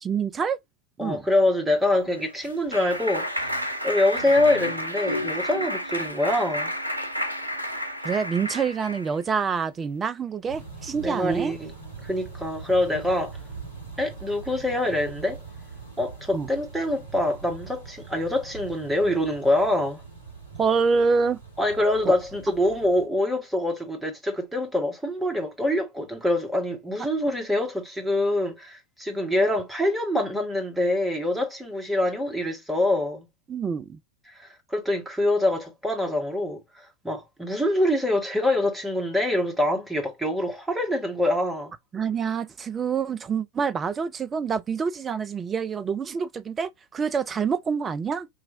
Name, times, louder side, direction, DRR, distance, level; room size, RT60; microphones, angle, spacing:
voice 1, 0.0-0.6 1.0-1.2 8.0-11.5 16.3-16.5 20.6-21.4 22.1-22.2 33.5-34.0 41.9-48.3, right 5 dB, 20° right, 0.4 m, -26 dB
voice 2, 1.0-6.7 11.0-11.7 12.0-13.4 14.0-15.4 16.0-20.0 21.6-33.3 34.3-41.7, left 1 dB, 5° right, 1.4 m, -25 dB
Clapping, 1.9-9.1, equal, 85° right, 0.7 m, -31 dB
sound 1, 10.5-23.1, right 5 dB, 80° left, 2.1 m, -42 dB
4.8 x 3.0 x 2.6 m
figure-of-eight pair, 90°, 0 cm